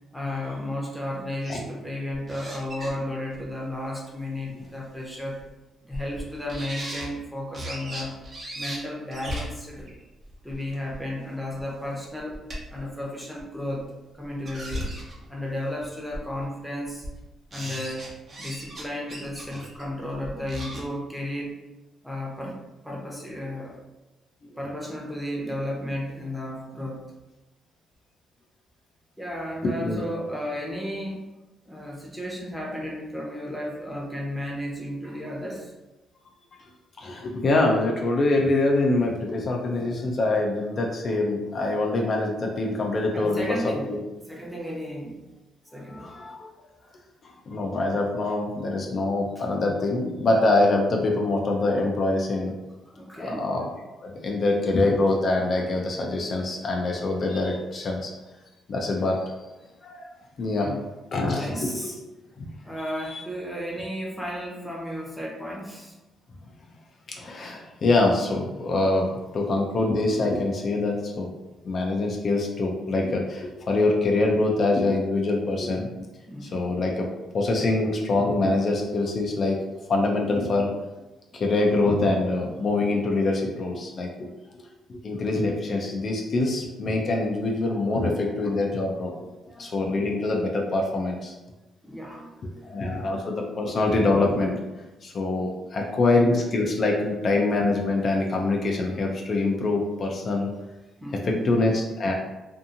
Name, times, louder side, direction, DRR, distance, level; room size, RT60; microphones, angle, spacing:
voice 1, 0.1-5.4 5.8-8.2 8.5-9.9 10.4-12.4 12.7-13.9 14.1-14.9 15.3-17.0 17.5-18.1 18.4-21.6 22.0-22.6 22.8-23.8 24.6-27.0 29.2-31.3 31.7-35.7 43.1-43.9 44.3-45.2 45.7-46.2 52.9-53.5 60.4-60.8 61.2-62.0 62.6-66.0 76.3-76.6 89.5-89.8 91.8-93.1 101.0-101.4, left 1 dB, ahead, -3 dB, 0.8 m, -33 dB
sound 1, 2.3-2.9 3.3-3.4 4.6-4.7 5.4-5.5 5.9-6.2 6.5-7.1 7.5-8.8 9.1-11.0 11.6-11.7 12.0-12.8 13.4-13.5 14.2-15.3 15.8-15.9 16.1-16.4 16.8-17.2 17.5-18.8 19.1-20.8, equal, 40° right, 0.8 m, -36 dB
voice 2, 29.6-30.0 37.0-44.0 45.9-46.5 47.2-52.5 53.2-53.7 54.0-58.1 58.7-59.3 59.8-60.0 60.4-60.7 61.1-61.9 62.4-62.5 63.1-63.2 67.2-71.3 71.6-75.9 76.5-77.1 77.3-80.7 81.3-84.3 84.9-89.1 89.6-91.3 92.6-94.6 95.0-100.5 101.2-102.1, left 2 dB, 45° left, 0 dB, 0.4 m, -24 dB
2.7 x 2.5 x 2.5 m, 1.1 s
cardioid pair, 105°, 0 cm